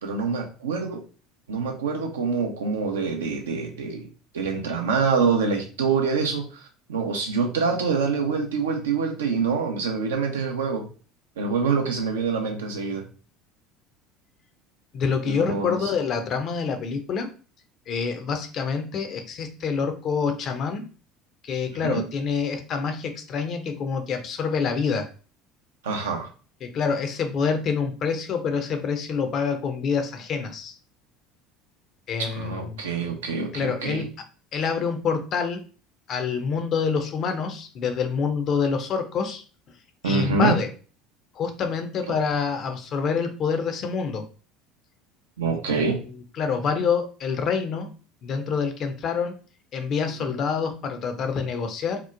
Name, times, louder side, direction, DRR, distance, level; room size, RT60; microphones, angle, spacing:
voice 1, 0.0-1.0 1.5-4.1 4.3-10.8 11.4-13.0 15.3-15.9 21.8-22.0 25.8-26.3 32.2-34.1 40.0-40.6 42.1-42.2 45.4-46.0 50.2-50.3, right 5 dB, 75° right, 3 dB, 0.5 m, -26 dB
voice 2, 14.9-17.3 17.9-20.8 21.4-25.1 26.6-30.7 32.1-32.8 33.5-34.1 34.5-35.6 36.1-39.4 40.0-40.7 41.3-44.2 45.7-45.9 46.4-47.9 48.2-49.3 49.7-52.0, left 5 dB, 45° left, 6 dB, 0.5 m, -26 dB
2.9 x 2.1 x 2.3 m, 0.37 s
figure-of-eight pair, 70°, 0 cm